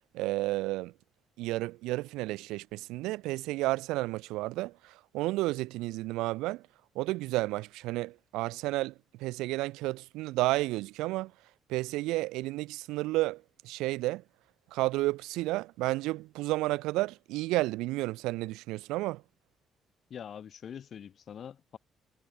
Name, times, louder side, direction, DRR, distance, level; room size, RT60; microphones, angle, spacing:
voice 1, 0.1-0.9 1.4-6.6 6.9-8.9 9.2-11.3 11.7-14.2 14.7-19.2, right 19 dB, 80° right, 1.5 m, -31 dB
voice 2, 20.1-21.8, left 8 dB, 60° left, 6.4 m, -44 dB
hypercardioid pair, 55°, 0 cm